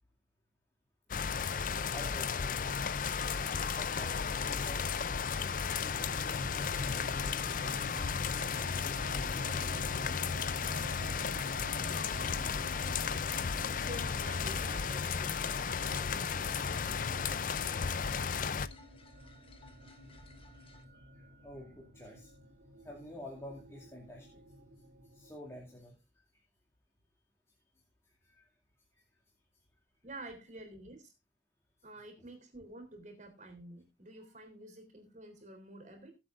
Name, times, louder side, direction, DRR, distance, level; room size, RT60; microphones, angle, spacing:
sound 1, 1.1-18.7, left 6 dB, 50° left, 0.5 m, -34 dB
voice 1, 1.9-2.5 3.7-4.8 5.8-7.3 7.5-8.0 8.8-10.1 19.8-19.9 20.5-20.6 20.9-22.3 22.8-24.4 25.1-26.0 28.2-28.5 28.9-29.0 32.2-32.3, left 1 dB, 15° left, -2 dB, 2.5 m, -51 dB
sound 2, 5.9-25.8, equal, 85° right, 2.2 m, -49 dB
voice 2, 13.6-17.4 30.0-31.1 31.8-36.1, right 1 dB, 45° right, 7 dB, 3.4 m, -50 dB
sound 3, 13.9-20.8, left 1 dB, 30° left, 1.3 m, -54 dB
20.0 x 7.6 x 2.5 m, 0.24 s
head